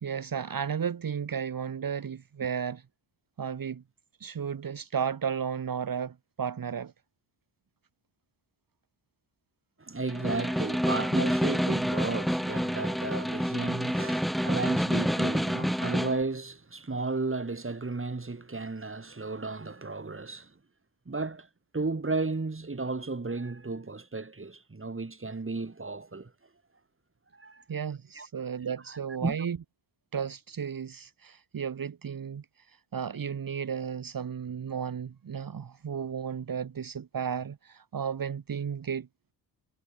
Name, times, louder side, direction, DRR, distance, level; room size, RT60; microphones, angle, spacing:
voice 1, 0.0-2.8 3.4-3.8 4.2-6.9 27.7-29.6 30.1-39.1, right 7 dB, 45° right, 1.9 m, -34 dB
voice 2, 9.8-20.5 21.1-21.5 21.7-26.3 27.3-27.6 28.1-28.3 28.9-29.4, right 3 dB, 25° right, 7.9 m, -34 dB
Snare drum, 10.1-16.2, equal, ahead, 1.3 m, -28 dB
supercardioid pair, 55°, 48 cm